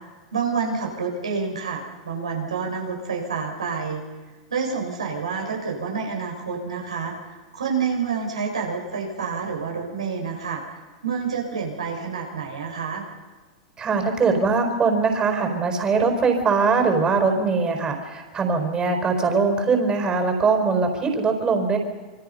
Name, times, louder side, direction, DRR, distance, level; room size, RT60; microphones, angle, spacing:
voice 1, 0.3-4.0 4.5-7.2 7.5-10.6 11.0-13.0, right 5 dB, 80° right, 2 dB, 6.1 m, -28 dB
voice 2, 13.8-21.8, right 4 dB, 25° right, 4 dB, 4.9 m, -21 dB
27.5 x 25.0 x 5.7 m, 1.3 s
figure-of-eight pair, 90°, 3 cm